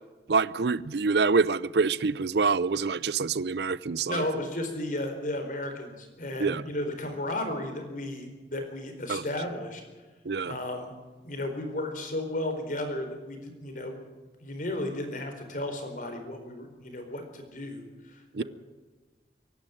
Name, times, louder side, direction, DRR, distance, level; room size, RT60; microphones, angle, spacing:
voice 1, 0.3-4.3 6.4-6.6 9.1-9.2 10.3-10.6 18.3-18.4, right 4 dB, 65° right, 0.5 m, -26 dB
voice 2, 4.0-9.8 10.4-10.9 11.2-13.9 14.4-18.4, left 1 dB, 50° left, 4.4 m, -34 dB
24.0 x 11.5 x 9.2 m
head